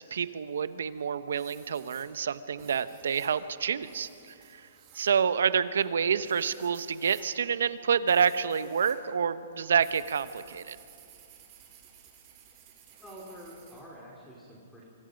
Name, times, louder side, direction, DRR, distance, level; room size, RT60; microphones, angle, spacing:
voice 1, 0.0-4.3 4.9-10.8, right 7 dB, 85° right, 13 dB, 1.0 m, -28 dB
sound 1, 0.6-1.0 1.3-9.0 9.3-13.8, right 8 dB, 30° right, 4.3 m, -55 dB
voice 2, 13.0-14.8, equal, 5° left, -3 dB, 3.5 m, -47 dB
26.0 x 25.0 x 5.3 m, 2.6 s
hypercardioid pair, 160°, 0 cm